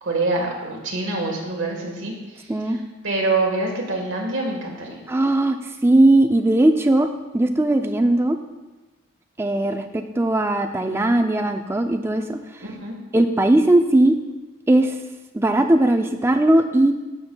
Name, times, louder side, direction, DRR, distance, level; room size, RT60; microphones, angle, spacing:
voice 1, 0.0-5.0 12.6-12.9, right 2 dB, 75° right, 0 dB, 1.4 m, -26 dB
voice 2, 5.1-7.1 7.3-8.4 9.4-12.4 13.1-14.2 14.7-15.0 15.3-16.9, right 1 dB, 10° right, 6 dB, 0.3 m, -18 dB
12.0 x 5.5 x 2.2 m, 1.1 s
head